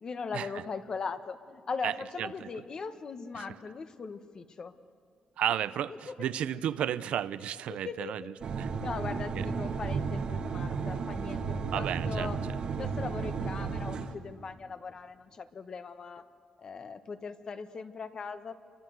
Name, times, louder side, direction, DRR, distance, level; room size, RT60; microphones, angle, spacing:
voice 1, 0.0-4.7 6.1-6.2 7.7-8.1 8.7-12.4 12.8-16.2 16.6-18.5, left 5 dB, 35° left, 10 dB, 1.3 m, -39 dB
voice 2, 1.8-2.5 3.4-3.5 5.4-8.2 8.6-8.7 9.4-9.5 11.7-12.3, right 10 dB, 80° right, 14 dB, 0.7 m, -33 dB
sound 1, 8.4-14.1, right 5 dB, 50° right, 1.5 m, -33 dB
28.5 x 24.0 x 7.9 m, 2.3 s
cardioid pair, 155°, 2 cm